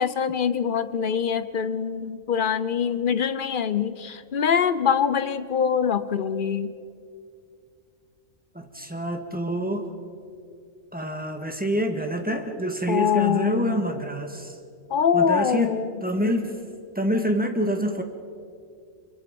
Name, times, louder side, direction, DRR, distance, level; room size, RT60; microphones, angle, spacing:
voice 1, 0.0-6.7 12.9-13.8 14.9-16.0, left 7 dB, 45° left, 13 dB, 0.8 m, -24 dB
voice 2, 8.5-9.9 10.9-14.6 15.1-15.8 16.0-16.6 17.0-18.0, equal, 5° right, 4 dB, 1.7 m, -27 dB
24.5 x 23.0 x 5.3 m, 2.4 s
omnidirectional pair, 1.4 m